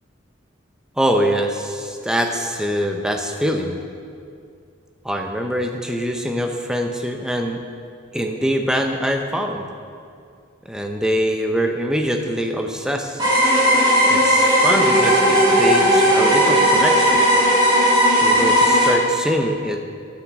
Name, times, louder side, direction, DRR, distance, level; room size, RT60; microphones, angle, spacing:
voice 1, 1.0-3.8 5.0-7.6 8.1-9.7 10.7-13.2 14.1-17.2 18.2-19.8, equal, 5° right, 3 dB, 0.6 m, -23 dB
sound 1, 13.2-18.9, equal, 20° right, 2.6 m, -16 dB
10.0 x 6.0 x 7.4 m, 2.3 s
head